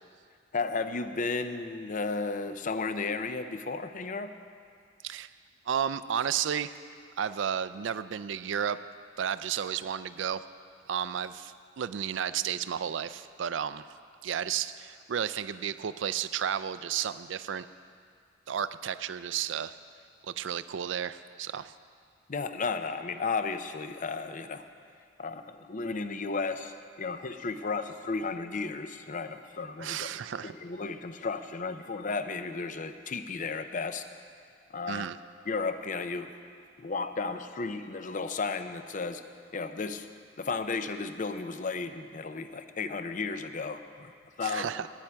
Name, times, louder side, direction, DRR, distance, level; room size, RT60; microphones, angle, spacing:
voice 1, 0.5-4.3 22.3-24.6 25.2-30.1 30.4-34.0 34.7-35.1 35.5-36.3 36.8-39.2 39.5-40.1 40.4-44.7, left 4 dB, 45° left, 10 dB, 0.6 m, -34 dB
voice 2, 5.7-6.7 7.2-8.8 9.2-10.4 10.9-13.9 14.2-17.7 18.5-19.8 20.2-21.7 29.8-30.5 34.9-35.2 44.4-44.9, right 8 dB, 75° right, 14 dB, 0.4 m, -32 dB
19.0 x 8.6 x 4.6 m, 2.2 s
head